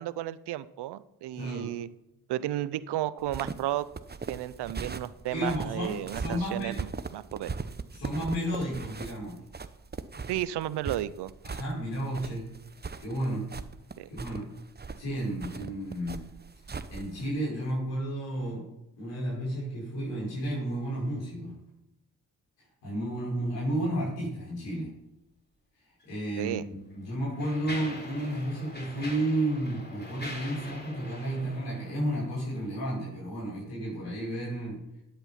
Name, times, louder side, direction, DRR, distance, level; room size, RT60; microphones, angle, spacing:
voice 1, 0.0-1.9 2.3-3.8 4.3-7.5 10.3-11.3 14.0-14.1 26.4-26.6, right 13 dB, 70° right, 17 dB, 0.7 m, -33 dB
voice 2, 1.4-1.7 5.3-6.8 7.9-9.4 11.4-12.5 13.0-13.5 14.1-14.4 15.0-16.3 16.9-18.7 19.0-21.6 22.8-24.9 26.0-34.7, right 1 dB, 80° left, -5 dB, 5.6 m, -32 dB
sound 1, 3.2-17.3, right 4 dB, 25° right, 0.9 m, -39 dB
Mechanisms, 26.0-26.2 26.9-32.6, left 1 dB, 25° left, 4.0 m, -43 dB
12.5 x 8.0 x 5.9 m, 0.88 s
hypercardioid pair, 40°, 42 cm